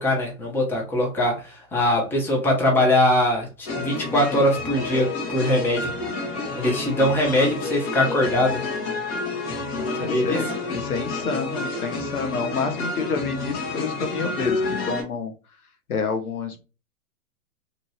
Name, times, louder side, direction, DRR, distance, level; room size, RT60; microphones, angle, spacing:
voice 1, 0.0-5.9 6.6-8.6 10.0-10.4, left 1 dB, 5° left, -1 dB, 0.7 m, -22 dB
sound 1, 3.7-15.0, left 3 dB, 30° left, 0.9 m, -29 dB
voice 2, 9.7-15.3 15.9-16.6, left 5 dB, 85° left, 7 dB, 0.9 m, -29 dB
3.0 x 2.6 x 2.7 m, 0.32 s
hypercardioid pair, 120°, 43 cm